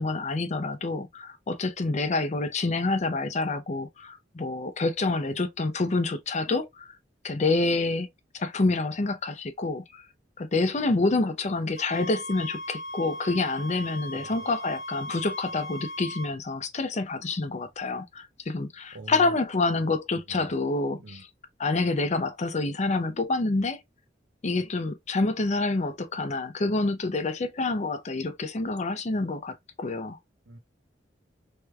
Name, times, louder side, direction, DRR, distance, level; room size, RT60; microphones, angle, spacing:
voice 1, 0.0-7.0 7.2-8.1 8.3-10.0 10.4-21.3 21.6-23.8 24.4-30.2, left 3 dB, 40° left, 0.6 m, -27 dB
sound 1, 11.8-16.3, equal, 60° left, 1.0 m, -38 dB
voice 2, 18.9-19.3 20.3-20.5 21.0-21.2 30.5-30.6, right 2 dB, 65° right, 0.6 m, -44 dB
3.2 x 3.0 x 2.3 m
head